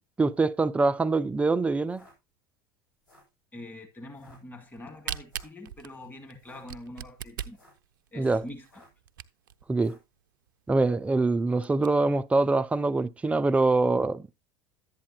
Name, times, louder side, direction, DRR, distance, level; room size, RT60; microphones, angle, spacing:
voice 1, 0.2-2.0 8.2-8.4 9.7-10.0 10.7-14.3, right 3 dB, 10° right, 0.5 m, -24 dB
sound 1, 1.8-2.2 2.9-3.4 4.1-4.4 5.3-5.6 6.3-6.7 7.4-7.9 8.6-9.0 9.7-10.1, left 1 dB, 75° left, 7.1 m, -58 dB
voice 2, 3.5-7.6 8.1-8.7, left 1 dB, 15° left, 2.0 m, -44 dB
Camera, 4.7-9.6 10.2-10.3 10.5-10.6 11.0-11.1 11.5-11.9, right 10 dB, 65° right, 0.5 m, -39 dB
11.0 x 8.5 x 2.9 m
figure-of-eight pair, 75°, 12 cm